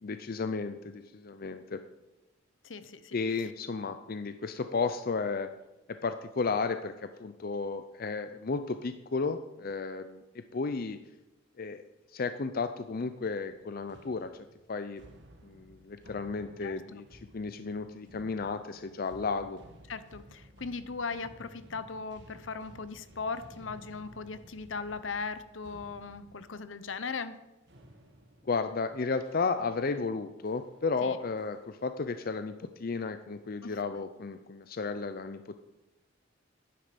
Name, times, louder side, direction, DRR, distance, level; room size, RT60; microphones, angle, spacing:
voice 1, 0.0-1.8 3.1-5.5 6.0-11.0 11.6-11.8 12.1-14.3 14.7-15.0 15.4-19.6 28.4-35.6, left 4 dB, 50° left, 9 dB, 0.5 m, -33 dB
voice 2, 2.6-3.2 16.6-16.7 19.9-27.4 31.0-31.2 33.6-33.8, left 4 dB, 70° left, 12 dB, 0.8 m, -38 dB
sound 1, 13.5-30.0 30.5-30.8 31.4-31.9, equal, 60° right, 1.6 m, -55 dB
11.0 x 10.5 x 5.2 m, 1.0 s
head